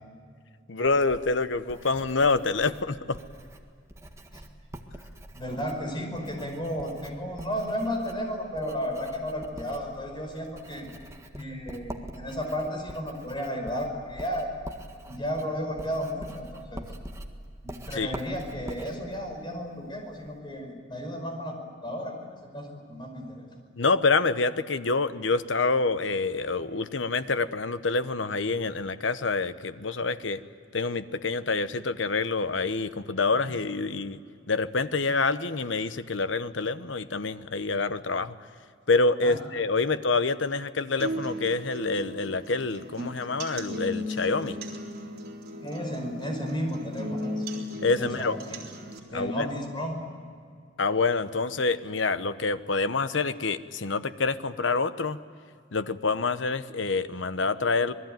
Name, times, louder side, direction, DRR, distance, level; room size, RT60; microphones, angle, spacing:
voice 1, 0.7-3.2 17.9-18.1 23.8-30.4 30.7-34.2 34.5-38.3 38.9-44.6 47.8-48.4 49.1-49.5 50.8-55.2 55.7-57.9, left 3 dB, 75° left, 12 dB, 1.0 m, -27 dB
Writing, 0.9-20.4, right 1 dB, 15° right, 1.7 m, -45 dB
voice 2, 5.3-10.9 11.4-14.5 15.1-16.9 17.6-23.5 39.2-39.4 45.6-47.5 48.0-48.6 49.1-50.0, equal, 25° left, 3 dB, 5.3 m, -33 dB
sound 1, 41.0-49.0, equal, 50° right, 3.8 m, -36 dB
27.0 x 20.5 x 9.2 m, 2.2 s
head